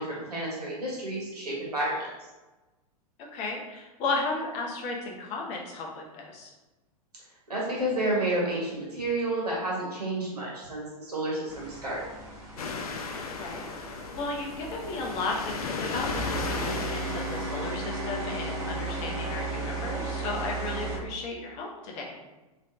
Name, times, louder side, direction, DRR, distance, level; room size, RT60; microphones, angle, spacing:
voice 1, 0.0-2.1 7.5-12.0, right 1 dB, 80° right, -5 dB, 1.4 m, -30 dB
voice 2, 3.2-6.5 13.4-13.9 14.1-22.1, left 3 dB, 35° left, -1 dB, 0.7 m, -34 dB
sound 1, 11.5-21.0, right 2 dB, 20° right, 1.2 m, -35 dB
sound 2, 12.6-17.8, left 4 dB, 70° left, 0.4 m, -35 dB
3.0 x 3.0 x 2.6 m, 1.1 s
figure-of-eight pair, 95°, 20 cm